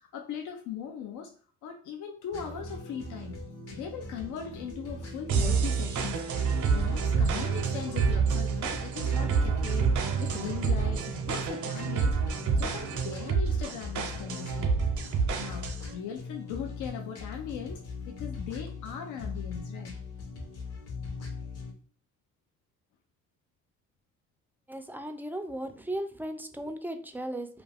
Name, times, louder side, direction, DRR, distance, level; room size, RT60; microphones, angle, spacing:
voice 1, 0.0-1.3 1.6-3.4 3.7-14.7 15.4-19.9, left 8 dB, 85° left, 3 dB, 0.5 m, -39 dB
sound 1, 2.3-21.7, left 3 dB, 55° left, 0.9 m, -41 dB
sound 2, 5.3-15.9, right 5 dB, 75° right, 0.7 m, -28 dB
voice 2, 24.7-27.5, right 1 dB, 5° right, 7 dB, 0.3 m, -36 dB
2.4 x 2.3 x 3.3 m, 0.41 s
cardioid pair, 90°, 30 cm